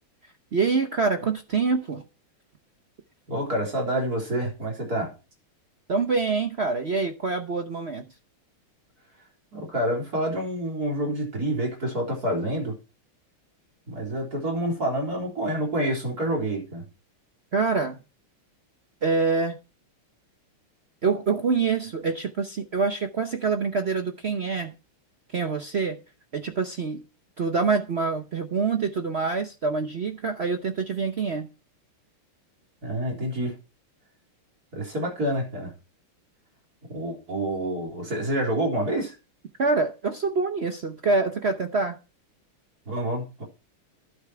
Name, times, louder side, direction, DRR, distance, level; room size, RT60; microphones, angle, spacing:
voice 1, 0.5-2.0 5.9-8.0 17.5-18.0 19.0-19.6 21.0-24.7 25.3-26.0 26.3-27.0 27.4-31.5 39.6-42.0, right 4 dB, 65° right, 0.6 m, -25 dB
voice 2, 3.3-5.1 9.5-12.7 13.9-16.9 32.8-33.5 34.7-35.7 36.9-39.1 42.9-43.4, right 1 dB, 45° right, 4.5 m, -28 dB
12.0 x 8.2 x 4.6 m
omnidirectional pair, 2.4 m